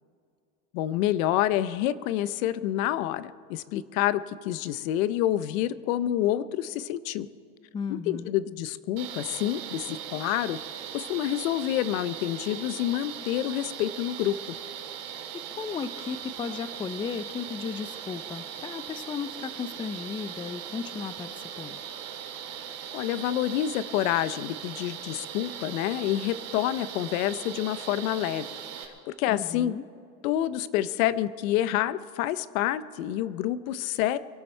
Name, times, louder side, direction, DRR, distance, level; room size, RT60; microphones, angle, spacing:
voice 1, 0.7-7.3 8.1-10.6 10.9-14.4 22.9-28.5 28.8-29.7 30.2-34.2, left 12 dB, 80° left, 16 dB, 0.7 m, -28 dB
voice 2, 7.7-8.3 15.6-21.8 29.3-29.8, left 6 dB, 15° left, 14 dB, 0.3 m, -35 dB
sound 1, 9.0-28.8, right 9 dB, 65° right, 2.3 m, -39 dB
24.0 x 12.0 x 4.4 m, 2.4 s
supercardioid pair, 115°, 41 cm